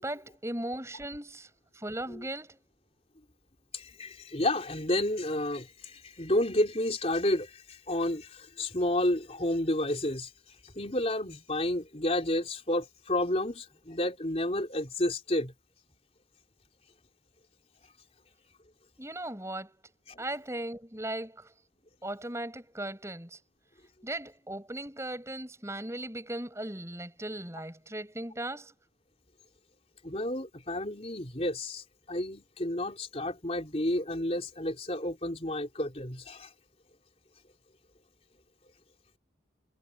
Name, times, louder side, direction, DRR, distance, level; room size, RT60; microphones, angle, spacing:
voice 1, 0.0-2.6 19.0-19.8 20.2-21.5 22.0-23.4 24.0-28.7, right 1 dB, 15° right, 8.0 m, -38 dB
voice 2, 3.7-15.5 20.1-20.2 30.0-36.5, left 1 dB, 35° left, 4.0 m, -31 dB
head